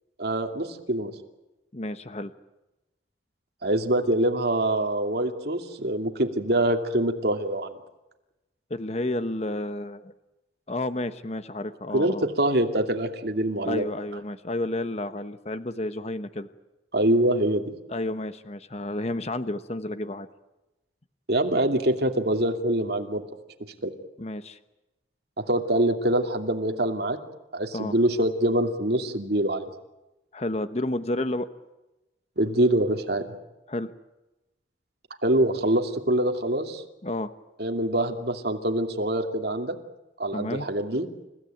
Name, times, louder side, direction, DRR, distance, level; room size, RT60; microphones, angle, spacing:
voice 1, 0.2-1.1 3.6-7.7 11.9-13.8 16.9-17.7 21.3-23.2 23.8-23.9 25.5-27.2 27.5-29.7 32.4-33.2 35.2-36.8 37.6-39.8 40.2-41.1, right 1 dB, 60° right, 4 dB, 2.8 m, -24 dB
voice 2, 1.7-2.3 8.7-10.1 10.7-12.2 13.6-16.5 17.9-20.3 24.2-24.6 27.7-27.9 30.3-31.5 33.7-33.9 37.0-37.3 40.3-40.7, left 1 dB, 35° left, 11 dB, 1.1 m, -31 dB
29.5 x 16.5 x 9.2 m, 0.99 s
head